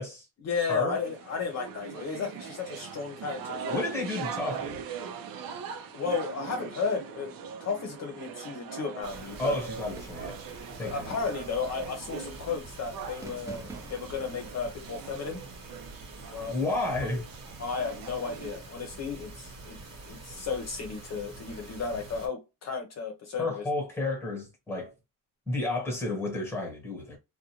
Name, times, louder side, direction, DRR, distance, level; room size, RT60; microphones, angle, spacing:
voice 1, 0.4-3.8 5.9-9.6 10.8-15.4 16.2-16.6 17.0-17.1 17.6-19.8 20.1-23.6, left 5 dB, 50° left, 0.7 m, -34 dB
sound 1, 0.9-18.6, right 7 dB, 80° right, 0.6 m, -42 dB
voice 2, 3.7-4.8 9.4-10.4 10.8-11.2 16.5-17.2 23.4-24.9 25.5-27.2, left 2 dB, 5° left, 1.1 m, -31 dB
sound 2, 9.0-22.3, right 2 dB, 50° right, 1.3 m, -46 dB
sound 3, 10.0-10.4 11.3-11.8 13.2-14.3, right 3 dB, 10° right, 0.5 m, -45 dB
2.5 x 2.2 x 2.9 m
cardioid pair, 145°, 34 cm